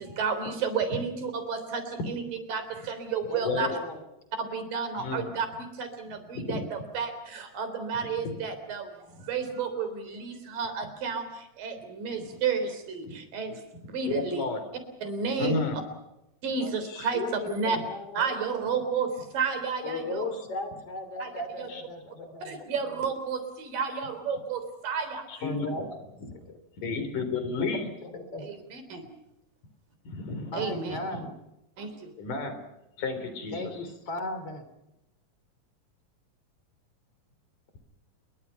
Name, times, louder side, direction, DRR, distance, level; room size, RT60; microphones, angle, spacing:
voice 1, 0.0-2.2 2.5-3.7 4.4-13.6 13.9-14.4 15.0-15.5 16.4-17.2 17.5-17.8 18.2-20.3 21.2-21.3 21.6-21.7 22.4-25.4 28.4-29.1 30.5-31.0 31.8-32.1, right 5 dB, 80° right, 9 dB, 5.3 m, -32 dB
voice 2, 3.3-4.0 16.6-18.2 19.8-22.6 25.4-26.0 26.3-26.6 28.1-28.5 30.5-31.3 33.5-34.6, left 2 dB, 45° left, 9 dB, 3.9 m, -36 dB
voice 3, 5.0-5.3 6.4-6.6 8.2-8.3 12.2-12.4 13.1-13.2 14.1-14.6 15.4-15.8 21.7-21.8 25.3-25.9 26.8-27.9 30.1-31.2 32.2-32.6 33.0-33.9, left 4 dB, 70° left, 9 dB, 5.3 m, -32 dB
27.5 x 23.0 x 5.8 m, 0.91 s
omnidirectional pair, 3.9 m